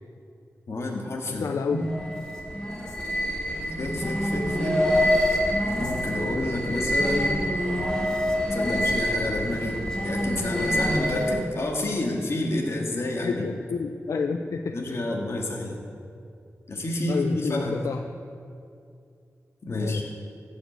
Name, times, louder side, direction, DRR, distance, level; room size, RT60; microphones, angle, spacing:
voice 1, 0.7-1.8 3.8-4.8 5.8-7.4 8.5-13.4 14.7-15.8 16.7-17.8 19.6-20.0, left 1 dB, 55° left, 0 dB, 2.2 m, -29 dB
voice 2, 1.3-1.9 7.1-7.2 13.2-15.0 17.1-18.0 19.7-20.0, left 5 dB, 85° left, 4 dB, 0.5 m, -30 dB
sound 1, 1.8-11.5, equal, 15° left, 2.1 m, -26 dB
15.5 x 5.6 x 7.8 m, 2.4 s
wide cardioid pair, 90°, 5 cm